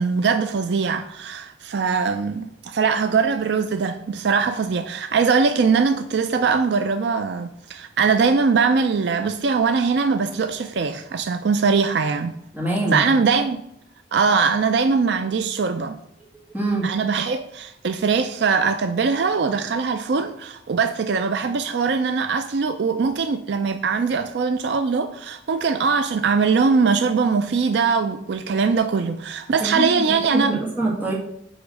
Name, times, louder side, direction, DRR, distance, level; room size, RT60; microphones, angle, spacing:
voice 1, 0.0-12.3 12.9-13.6 14.1-16.0 16.8-30.6, right 5 dB, 60° right, 0.4 m, -21 dB
voice 2, 12.5-13.0 16.5-16.9 29.6-31.1, right 2 dB, 10° right, 1.8 m, -24 dB
7.9 x 3.1 x 6.2 m
head